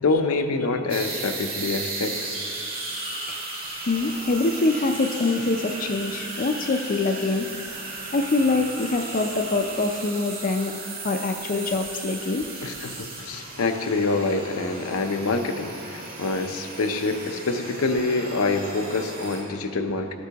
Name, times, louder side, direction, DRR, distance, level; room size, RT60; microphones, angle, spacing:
voice 1, 0.0-2.3 12.6-20.2, left 3 dB, 85° left, 6 dB, 0.6 m, -26 dB
sound 1, 0.9-19.4, right 3 dB, 60° right, 2.2 m, -35 dB
voice 2, 3.9-7.5 8.1-10.7 11.0-12.5, left 3 dB, 40° left, 5 dB, 0.4 m, -24 dB
14.0 x 8.1 x 2.9 m, 2.5 s
head